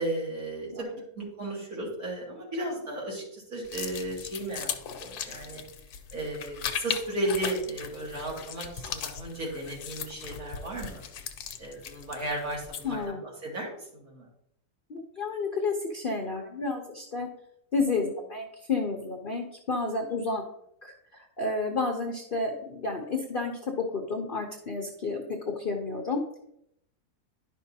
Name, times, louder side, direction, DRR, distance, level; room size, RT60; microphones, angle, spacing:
voice 1, 0.0-4.7 5.0-5.6 6.1-11.0 11.6-14.3, right 1 dB, 65° right, -3 dB, 2.7 m, -34 dB
sound 1, 3.6-13.0, left 8 dB, 75° left, 1.2 m, -38 dB
voice 2, 12.8-13.2 14.9-17.3 17.7-20.4 20.8-25.2 25.5-26.4, left 3 dB, 50° left, 2 dB, 0.7 m, -31 dB
11.0 x 5.5 x 2.7 m, 0.76 s
omnidirectional pair, 1.7 m